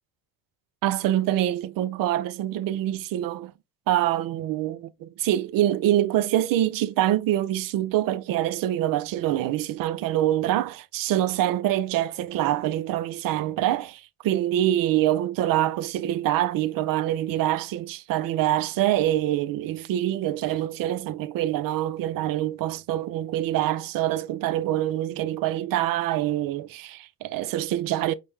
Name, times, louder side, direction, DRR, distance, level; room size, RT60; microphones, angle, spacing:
voice 1, 0.8-3.5 3.9-28.1, right 13 dB, 55° right, 0.5 m, -25 dB
5.1 x 2.1 x 3.1 m
supercardioid pair, 75°, 41 cm